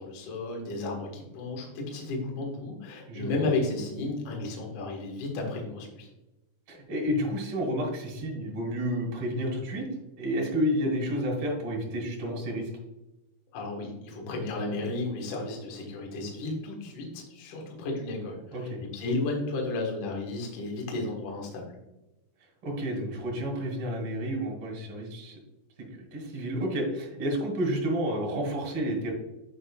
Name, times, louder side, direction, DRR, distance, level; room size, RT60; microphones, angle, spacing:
voice 1, 0.0-6.1 13.5-21.8, left 2 dB, 65° left, 0 dB, 2.1 m, -33 dB
voice 2, 6.7-9.9 10.2-12.7 18.5-18.8 22.6-25.4 26.1-29.1, equal, 50° right, -1 dB, 1.7 m, -30 dB
9.3 x 5.4 x 2.3 m, 0.97 s
omnidirectional pair, 5.6 m